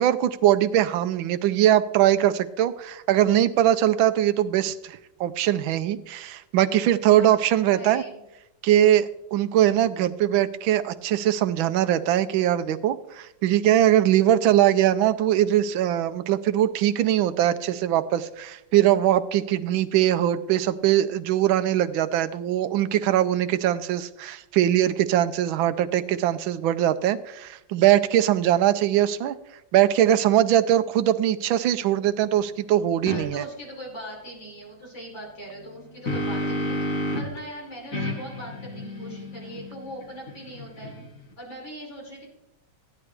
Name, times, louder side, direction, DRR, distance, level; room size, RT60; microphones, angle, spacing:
voice 1, 0.0-8.0 8.6-29.3 29.7-33.4, right 12 dB, 85° right, 11 dB, 1.4 m, -21 dB
voice 2, 7.1-8.2 14.1-14.2 33.1-40.9 41.4-42.2, right 1 dB, 70° left, -6 dB, 6.3 m, -40 dB
sound 1, 33.1-33.2 35.6-37.4 37.9-41.3, equal, 50° left, 2.1 m, -31 dB
15.5 x 10.5 x 3.4 m, 0.87 s
omnidirectional pair, 2.1 m